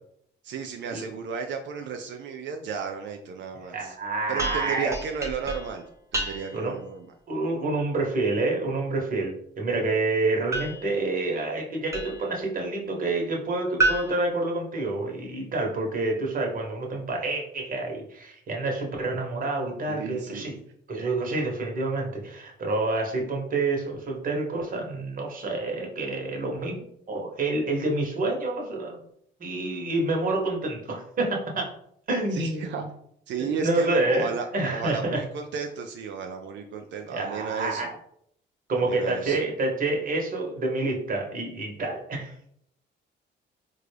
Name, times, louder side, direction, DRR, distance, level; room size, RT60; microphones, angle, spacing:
voice 1, 0.4-3.9 4.3-5.8 6.1-7.1 19.9-20.5 32.3-32.8 33.3-37.9 38.8-39.4, right 6 dB, 65° right, 4 dB, 0.4 m, -33 dB
voice 2, 3.7-4.9 6.5-6.8 7.3-20.6 20.9-26.8 27.1-29.0 29.4-31.7 32.1-32.9 33.4-35.2 37.1-37.9 38.7-42.3, right 2 dB, 45° right, 1 dB, 1.0 m, -28 dB
sound 1, 4.4-6.8 10.5-12.4 13.8-15.3, right 2 dB, 15° right, 0.7 m, -31 dB
3.6 x 2.2 x 3.2 m, 0.69 s
cardioid pair, 90°, 20 cm